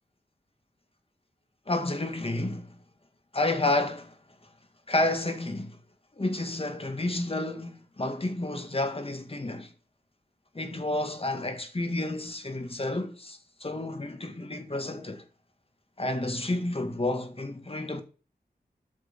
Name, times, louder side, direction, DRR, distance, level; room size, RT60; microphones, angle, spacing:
voice 1, 1.7-2.8 3.3-4.2 4.9-5.8 6.2-9.7 10.5-15.2 16.0-18.0, left 2 dB, 35° left, 1.9 m, -30 dB
9.2 x 6.7 x 7.9 m
wide cardioid pair, 70°, 17 cm